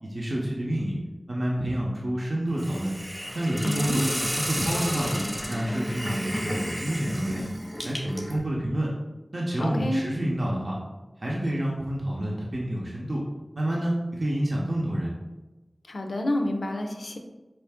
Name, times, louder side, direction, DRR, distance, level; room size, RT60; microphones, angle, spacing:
voice 1, 0.0-1.0 1.3-2.9 3.3-4.0 4.3-7.4 7.8-8.9 9.3-10.8 11.2-13.2 13.6-15.1, right 1 dB, 60° right, -4 dB, 0.7 m, -28 dB
Hiss, 2.6-8.4, equal, 5° right, 0.8 m, -32 dB
voice 2, 3.6-4.1 9.6-10.0 15.9-17.2, left 1 dB, 90° left, 3 dB, 0.4 m, -29 dB
4.5 x 2.5 x 3.5 m, 1.1 s
wide cardioid pair, 40°, 0 cm